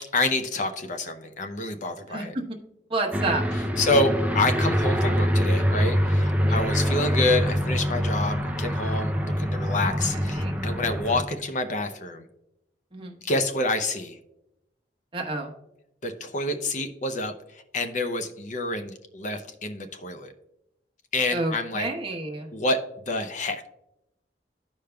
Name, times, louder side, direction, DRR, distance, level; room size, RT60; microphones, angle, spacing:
voice 1, 0.1-2.3 3.8-12.2 13.2-14.2 16.0-20.3 21.1-21.9 22.5-23.6, left 2 dB, 45° left, 7 dB, 0.6 m, -28 dB
voice 2, 2.1-2.4 2.9-3.4 6.4-6.6 10.1-10.5 12.9-13.2 15.1-15.5 21.3-22.5, right 2 dB, 30° right, 1 dB, 1.1 m, -30 dB
Aircraft, 3.1-11.2, equal, 10° right, 0.4 m, -25 dB
14.0 x 5.0 x 2.2 m, 0.88 s
head